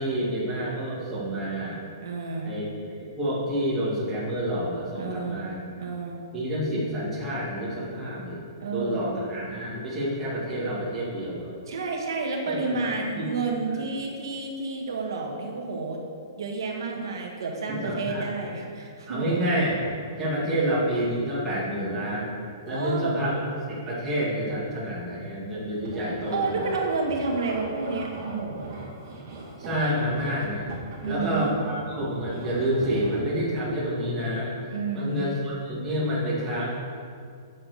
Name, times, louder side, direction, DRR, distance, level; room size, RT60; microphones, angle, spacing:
voice 1, 0.0-1.8 2.4-5.7 6.3-8.4 8.7-11.5 12.5-13.3 13.7-13.9 17.7-18.3 19.1-19.8 20.2-22.3 22.7-26.7 29.6-30.7 31.1-34.5 34.9-36.7, equal, 10° right, -9 dB, 2.5 m, -28 dB
voice 2, 2.0-2.6 4.9-5.5 5.8-6.2 8.6-9.2 11.7-16.0 16.4-19.4 22.7-23.2 26.3-28.7 31.0-31.5 34.7-35.3, right 3 dB, 65° right, 0 dB, 1.8 m, -30 dB
sound 1, 25.7-33.4, right 2 dB, 30° right, 2.4 m, -40 dB
9.7 x 7.4 x 6.7 m, 2.2 s
hypercardioid pair, 175°, 2 cm